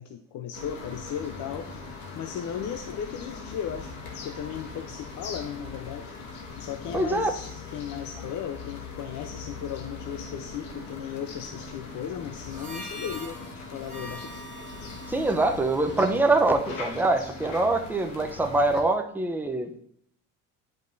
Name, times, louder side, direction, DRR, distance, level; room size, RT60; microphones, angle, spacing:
voice 1, 0.0-4.0 4.2-6.1 6.6-14.8, left 8 dB, 60° left, 5 dB, 0.7 m, -36 dB
sound 1, 0.5-18.8, left 4 dB, 85° left, 1.6 m, -40 dB
voice 2, 6.9-7.3 15.1-19.8, right 2 dB, 5° right, 5 dB, 0.6 m, -24 dB
Harmonica, 12.4-17.0, right 1 dB, 20° right, 1.8 m, -44 dB
10.5 x 5.2 x 2.6 m, 0.69 s
cardioid pair, 120°, 34 cm